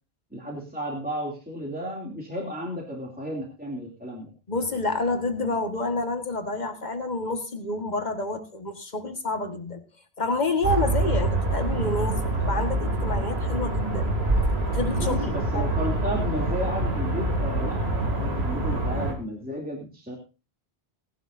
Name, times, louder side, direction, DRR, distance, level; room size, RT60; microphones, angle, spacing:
voice 1, 0.3-4.3 15.0-20.2, equal, 10° right, -1 dB, 2.7 m, -33 dB
voice 2, 4.5-9.8 10.2-14.1 14.7-15.7, left 2 dB, 45° left, 6 dB, 1.7 m, -28 dB
sound 1, 10.6-19.1, right 2 dB, 80° right, 2.8 m, -26 dB
18.5 x 12.0 x 2.6 m, 0.30 s
omnidirectional pair, 1.1 m